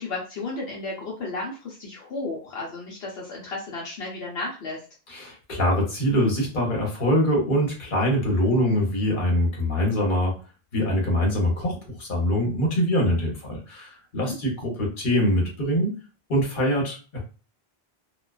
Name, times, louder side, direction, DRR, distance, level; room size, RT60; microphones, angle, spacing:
voice 1, 0.0-4.8 14.3-14.4, left 3 dB, 75° left, -3 dB, 0.9 m, -33 dB
voice 2, 5.1-10.3 10.7-15.9 16.3-17.2, equal, 55° left, -1 dB, 1.0 m, -24 dB
2.4 x 2.2 x 2.3 m, 0.34 s
omnidirectional pair, 1.1 m